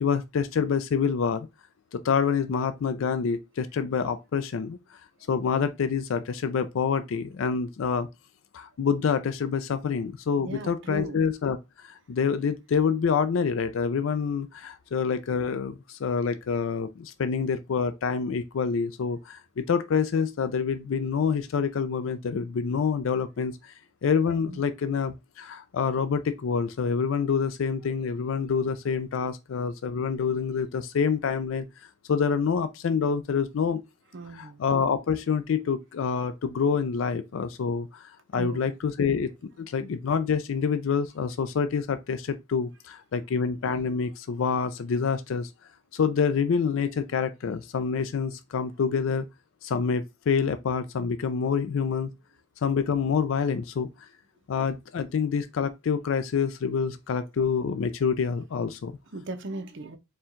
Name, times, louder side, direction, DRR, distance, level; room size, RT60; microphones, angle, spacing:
voice 1, 0.0-1.5 1.9-4.8 5.3-8.1 8.5-23.7 24.0-31.7 32.1-33.8 34.3-39.3 39.6-45.5 45.9-49.2 49.6-52.1 52.6-54.1 54.5-59.0, left 6 dB, 70° left, 0.4 m, -27 dB
voice 2, 10.4-11.2 24.5-24.7 34.1-34.7 38.3-38.7 59.1-60.0, right 2 dB, 60° right, 0.6 m, -38 dB
4.4 x 2.2 x 3.7 m
head